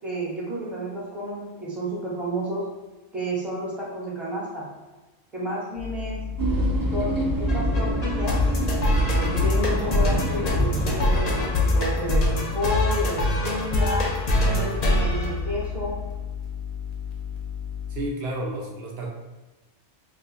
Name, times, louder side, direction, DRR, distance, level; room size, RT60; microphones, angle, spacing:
voice 1, 0.0-2.7 3.1-4.6 5.3-6.2 6.9-8.4 9.1-14.1 14.4-15.9, equal, ahead, -6 dB, 0.7 m, -31 dB
sound 1, 5.8-18.1, left 8 dB, 75° left, 0.9 m, -34 dB
sound 2, 6.4-11.5, right 1 dB, 35° right, 0.3 m, -26 dB
sound 3, 7.5-16.1, left 1 dB, 45° left, 0.6 m, -24 dB
voice 2, 17.9-19.1, right 1 dB, 70° right, -1 dB, 0.8 m, -31 dB
2.5 x 2.4 x 4.0 m, 1.1 s
omnidirectional pair, 1.2 m